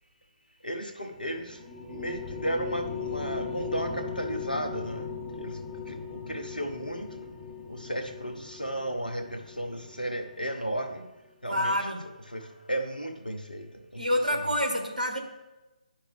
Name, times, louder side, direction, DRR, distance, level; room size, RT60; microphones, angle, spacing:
voice 1, 0.6-1.6 1.9-5.6 5.9-7.3 7.7-11.1 11.4-11.8 12.3-14.5, right 1 dB, 85° left, 5 dB, 1.0 m, -34 dB
sound 1, 1.1-10.9, left 5 dB, 5° right, 0.9 m, -39 dB
voice 2, 11.5-12.0 14.0-15.2, left 1 dB, 75° right, 3 dB, 1.6 m, -27 dB
10.0 x 5.7 x 3.4 m, 1.0 s
figure-of-eight pair, 145°, 5 cm